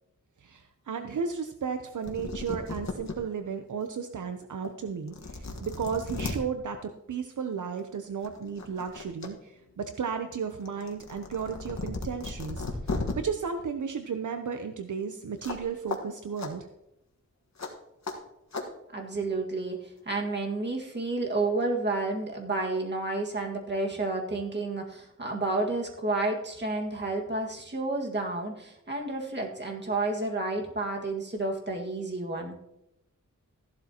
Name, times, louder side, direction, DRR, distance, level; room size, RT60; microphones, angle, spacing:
voice 1, 0.4-12.6 13.1-16.7, right 6 dB, 70° right, 6 dB, 0.8 m, -34 dB
sound 1, 1.8-1.9 2.0-3.2 3.7-3.8 4.6-4.7 5.1-6.4 7.6-7.8 8.2-9.3 9.6-13.1 15.4-15.6 15.9-16.0 16.4-16.5 17.6-17.7 18.0-18.2 18.5-18.7, left 3 dB, 60° left, 1.5 m, -35 dB
voice 2, 18.9-32.6, right 2 dB, 35° right, 1 dB, 1.9 m, -30 dB
14.5 x 11.5 x 2.9 m, 0.86 s
wide cardioid pair, 115°, 31 cm